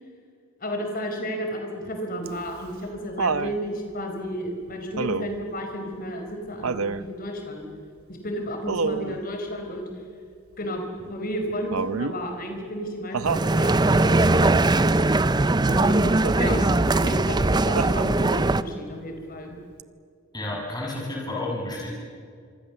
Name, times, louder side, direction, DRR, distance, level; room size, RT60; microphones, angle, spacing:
voice 1, 0.6-7.6 8.1-9.9 10.6-14.5 15.7-19.6, equal, 40° left, 4 dB, 4.5 m, -32 dB
Laughter, 2.3-3.6 5.0-5.5 6.6-7.1 8.7-9.2 11.7-12.2 13.1-13.5 15.9-16.4 17.8-18.4 19.8-19.9, right 4 dB, 85° right, 0.7 m, -28 dB
sound 1, 13.2-18.6, right 2 dB, 20° right, 0.5 m, -20 dB
voice 2, 16.4-16.7 20.3-21.9, left 1 dB, 20° left, -3 dB, 7.2 m, -31 dB
26.5 x 24.0 x 7.1 m, 2.2 s
head